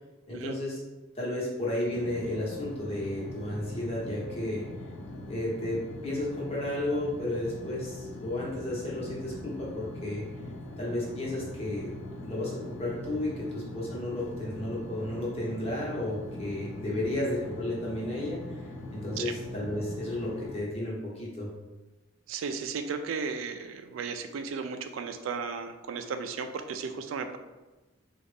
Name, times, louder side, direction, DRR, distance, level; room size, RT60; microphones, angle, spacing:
voice 1, 0.3-0.8 1.1-4.7 5.3-10.2 10.8-11.9 12.2-21.5, left 1 dB, 30° left, -5 dB, 1.0 m, -33 dB
sound 1, 1.9-20.6, left 1 dB, 85° left, 0.5 m, -42 dB
voice 2, 22.3-27.4, right 5 dB, 90° right, 7 dB, 0.4 m, -35 dB
3.8 x 2.4 x 3.3 m, 1.1 s
head